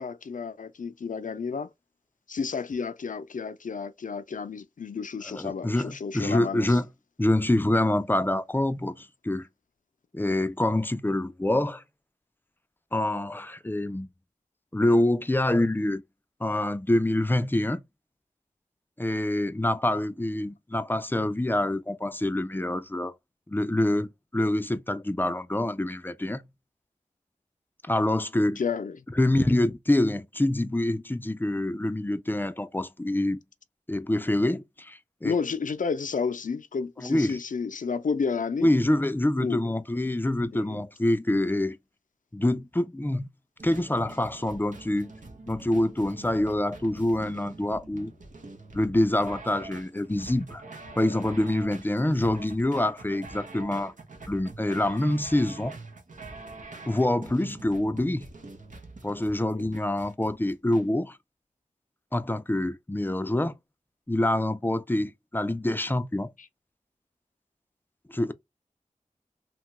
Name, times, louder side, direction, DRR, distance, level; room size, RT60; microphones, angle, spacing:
voice 1, 0.0-1.7 2.3-6.8 28.6-29.0 35.2-38.7 39.4-39.6 40.0-40.1 40.5-40.8 59.4-59.7, left 5 dB, 75° left, 0.4 m, -31 dB
voice 2, 5.3-6.9 7.2-9.5 10.1-11.8 12.9-14.1 14.7-16.0 16.4-17.8 19.0-23.1 23.5-26.4 27.8-28.6 29.2-33.4 33.9-35.3 37.0-37.4 38.6-41.8 42.3-43.3 43.6-45.1 45.5-48.1 48.7-50.6 51.0-53.9 54.3-55.8 56.9-58.3 59.0-61.2 62.1-63.5 64.1-66.3 68.1-68.3, left 1 dB, 15° left, 0.4 m, -26 dB
sound 1, 43.6-60.8, right 3 dB, 75° right, 0.6 m, -45 dB
2.9 x 2.2 x 2.9 m
wide cardioid pair, 50°, 13 cm